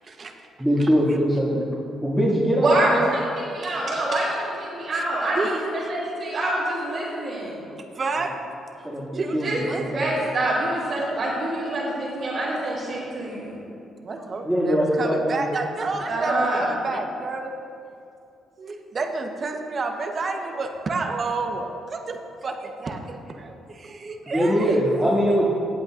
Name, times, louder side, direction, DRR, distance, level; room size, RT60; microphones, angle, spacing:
voice 1, 0.6-1.7 2.0-3.1 8.8-10.1 14.4-15.5 24.2-25.5, equal, ahead, -10 dB, 2.2 m, -22 dB
voice 2, 2.6-7.7 9.4-13.6 16.1-16.7, right 1 dB, 60° right, -11 dB, 2.6 m, -26 dB
voice 3, 7.9-8.4 9.1-10.2 14.0-17.5 18.6-24.6, right 3 dB, 40° right, 4 dB, 1.0 m, -30 dB
17.5 x 8.2 x 2.5 m, 2.6 s
cardioid pair, 90°, 0 cm